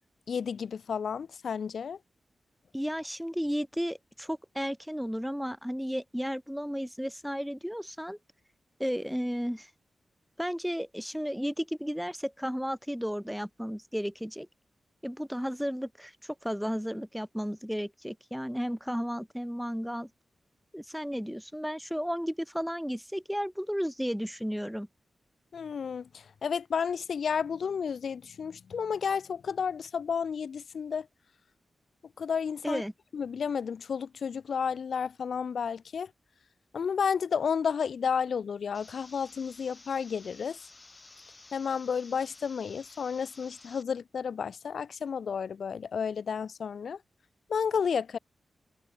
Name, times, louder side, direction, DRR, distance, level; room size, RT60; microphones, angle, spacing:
voice 1, 0.3-2.0 25.5-31.1 32.2-32.8 33.1-36.1 36.7-40.6 41.5-47.0 47.5-48.2, left 6 dB, 75° left, 0.8 m, -31 dB
voice 2, 2.7-8.2 8.8-9.7 10.4-14.5 15.0-20.1 20.7-24.9 32.6-32.9, equal, ahead, 1.1 m, -33 dB
sound 1, 38.7-43.8, left 2 dB, 25° left, 6.0 m, -53 dB
wide cardioid pair, 115°, 0 cm